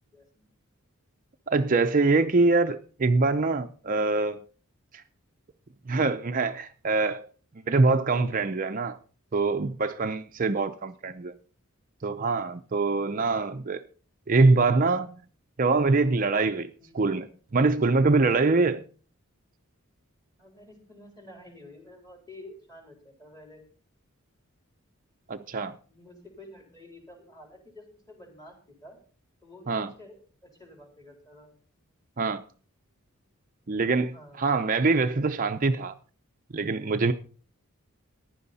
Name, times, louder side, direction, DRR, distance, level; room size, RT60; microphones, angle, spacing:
voice 1, 0.1-0.5 11.0-11.3 16.8-17.2 20.4-23.6 25.9-29.0 29.4-31.5 34.1-34.4, left 1 dB, 15° left, 3.8 m, -50 dB
voice 2, 1.5-4.4 4.9-5.0 5.9-7.3 7.7-9.0 9.3-11.3 12.0-13.8 14.3-15.1 15.6-16.7 16.9-17.3 17.5-18.8 25.3-25.8 29.7-29.9 32.2-32.4 33.7-35.9 36.5-37.1, right 3 dB, 40° right, 0.6 m, -24 dB
15.0 x 10.5 x 4.1 m
head